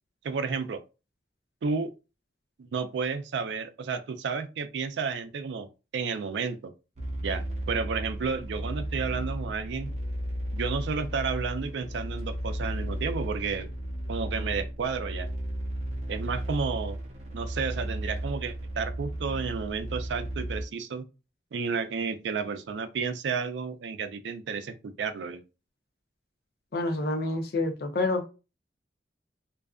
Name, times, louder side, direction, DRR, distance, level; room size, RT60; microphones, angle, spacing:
voice 1, 0.2-0.8 1.6-1.9 2.6-5.7 5.9-6.7 7.2-9.9 10.5-13.7 14.1-15.3 16.1-17.0 17.3-21.1 21.5-25.4, right 5 dB, 90° right, 0.4 m, -32 dB
sound 1, 7.0-20.6, right 1 dB, 40° right, 0.6 m, -34 dB
voice 2, 26.7-28.2, left 2 dB, 60° left, 0.5 m, -28 dB
2.5 x 2.3 x 2.3 m
head